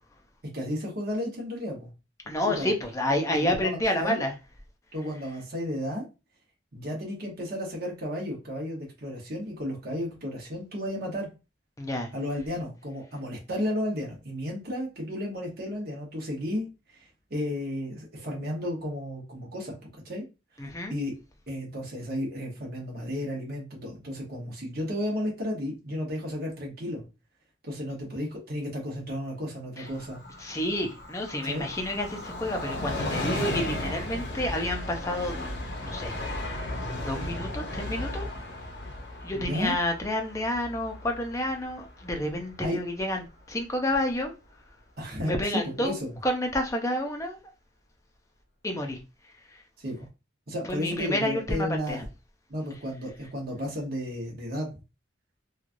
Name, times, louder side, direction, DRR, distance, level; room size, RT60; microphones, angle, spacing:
voice 1, 0.5-1.9 2.4-2.7 3.2-4.2 4.9-6.1 6.7-11.3 12.1-16.7 17.3-20.2 20.9-21.1 21.5-27.0 27.6-30.2 31.4-31.6 39.3-39.7 42.6-42.8 45.0-46.1 49.8-50.1 50.5-52.1 52.5-54.7, left 1 dB, 50° right, 1.0 m, -33 dB
voice 2, 2.3-4.3 11.8-12.1 20.6-20.9 29.8-29.9 30.4-35.4 35.8-36.2 36.9-38.3 39.2-44.3 45.2-45.9 46.2-47.4 48.6-49.0 49.5-49.6 50.7-52.0, left 1 dB, 15° left, 0.5 m, -29 dB
Train, 29.9-43.2 43.5-43.6, left 1 dB, 60° left, 0.7 m, -35 dB
3.1 x 2.3 x 2.5 m
head